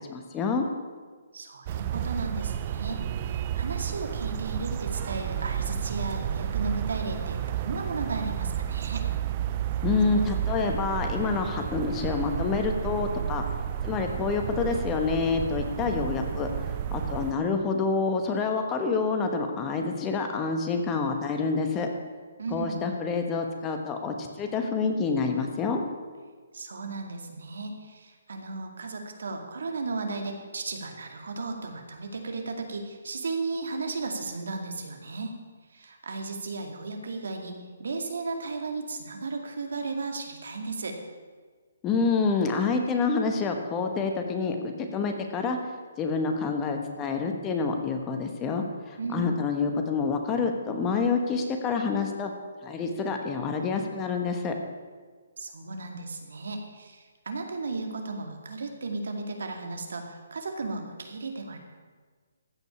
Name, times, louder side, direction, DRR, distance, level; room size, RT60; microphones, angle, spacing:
voice 1, 0.1-0.7 9.8-13.4 13.8-16.5 16.9-21.9 22.5-25.8 41.8-45.6 46.0-52.3 52.6-54.5, left 4 dB, 20° left, 4 dB, 1.2 m, -27 dB
voice 2, 1.3-9.0 22.4-22.8 26.5-35.3 35.7-41.0 49.0-49.3 55.4-61.6, right 3 dB, 75° right, 4 dB, 2.2 m, -35 dB
sound 1, 1.7-17.3, right 10 dB, 35° right, 0.6 m, -31 dB
15.0 x 5.4 x 8.7 m, 1.5 s
hypercardioid pair, 155°, 0 cm